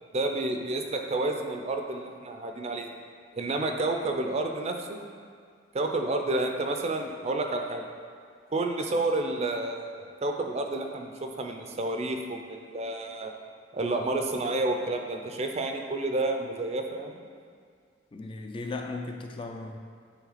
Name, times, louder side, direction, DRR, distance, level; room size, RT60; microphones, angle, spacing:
voice 1, 0.1-2.9 3.3-5.0 5.7-7.8 8.5-13.3 13.7-17.2, right 2 dB, 35° right, 4 dB, 0.5 m, -30 dB
voice 2, 18.1-19.8, left 3 dB, 30° left, 4 dB, 0.3 m, -36 dB
9.0 x 3.2 x 4.0 m, 2.1 s
head